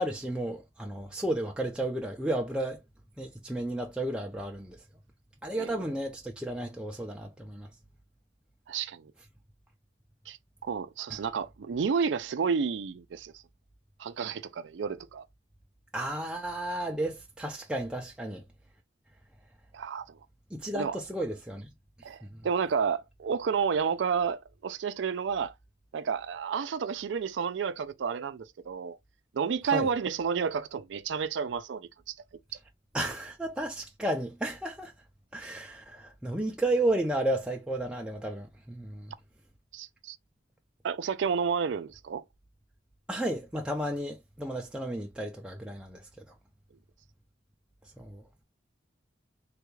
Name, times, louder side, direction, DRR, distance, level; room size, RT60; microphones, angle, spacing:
voice 1, 0.0-2.8 3.2-4.8 5.4-7.7 15.9-18.4 20.5-21.7 22.2-22.4 29.6-29.9 32.9-34.9 35.3-39.1 43.1-46.2 48.0-48.2, right 1 dB, 5° right, 0.4 m, -33 dB
voice 2, 8.7-9.1 10.3-10.4 10.6-13.3 14.0-15.3 19.7-20.2 20.7-21.0 22.0-25.5 25.9-29.0 29.3-32.1 39.7-40.2 40.8-42.2, right 6 dB, 75° right, 0.4 m, -31 dB
3.4 x 2.3 x 3.0 m
head